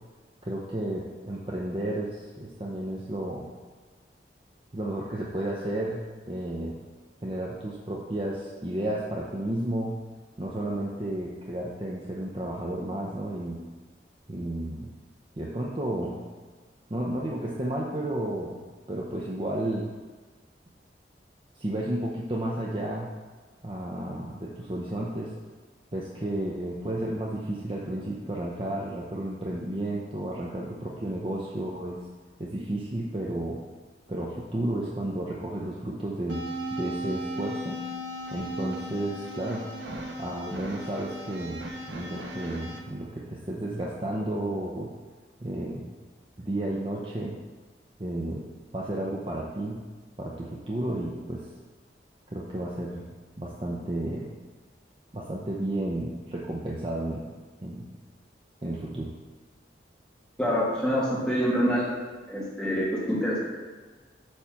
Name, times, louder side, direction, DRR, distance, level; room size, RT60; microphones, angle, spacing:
voice 1, 0.4-3.4 4.7-6.0 6.3-6.8 7.2-9.9 10.4-13.6 14.3-14.9 15.4-16.1 16.9-18.6 18.9-19.9 21.6-23.1 23.6-25.3 25.9-32.0 32.4-33.6 34.1-37.8 38.3-39.6 40.2-44.9 45.4-45.9 46.4-47.4 48.0-48.5 48.7-49.8 50.2-51.4 52.3-53.0 53.4-54.3 55.1-57.2 57.6-57.8 58.6-59.1, right 1 dB, 30° right, -4 dB, 0.7 m, -32 dB
sound 1, 36.3-42.8, right 1 dB, 90° right, 0.9 m, -36 dB
voice 2, 60.4-61.9 62.3-63.4, equal, 5° left, -7 dB, 1.6 m, -26 dB
8.6 x 3.2 x 5.8 m, 1.4 s
head